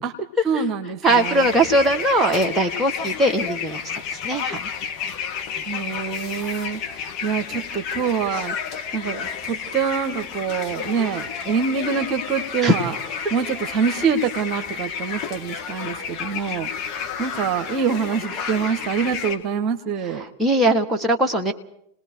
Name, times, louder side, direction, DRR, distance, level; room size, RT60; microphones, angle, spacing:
voice 1, 0.4-1.5 5.6-13.0 13.3-20.2, right 6 dB, 35° right, 8 dB, 1.7 m, -25 dB
sound 1, 1.0-19.4, left 7 dB, 35° left, 2.5 m, -31 dB
voice 2, 1.0-3.8 4.2-4.7 12.6-12.8 20.4-21.5, right 1 dB, 10° right, 1 dB, 1.8 m, -20 dB
29.0 x 19.5 x 4.8 m, 0.71 s
figure-of-eight pair, 90°, 0 cm